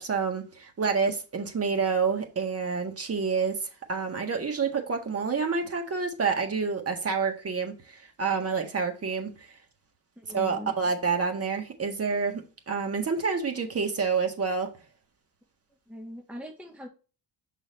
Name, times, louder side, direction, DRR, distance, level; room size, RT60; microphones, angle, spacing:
voice 1, 0.0-3.6 3.9-9.5 10.3-12.4 12.7-14.7, right 5 dB, 35° right, 1.7 m, -28 dB
voice 2, 10.2-10.7 15.9-16.9, left 1 dB, 5° right, 0.9 m, -41 dB
6.0 x 4.1 x 4.0 m
cardioid pair, 90°, 42 cm